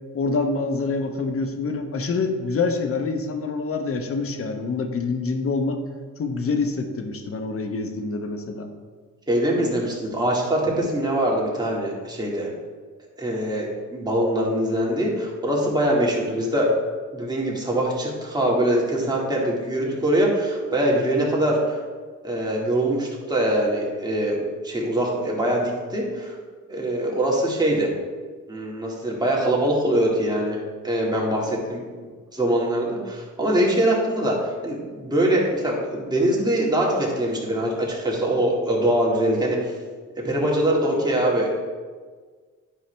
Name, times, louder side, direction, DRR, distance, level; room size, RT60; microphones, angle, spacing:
voice 1, 0.1-5.8 6.2-8.7, left 4 dB, 45° left, 6 dB, 1.0 m, -26 dB
voice 2, 9.3-12.5 13.2-16.7 17.1-21.8 22.2-26.4 26.7-27.9 28.5-31.8 32.3-39.6 40.2-41.5, right 1 dB, 15° right, -3 dB, 2.1 m, -23 dB
10.0 x 4.8 x 3.4 m, 1.5 s
cardioid pair, 90°, 30 cm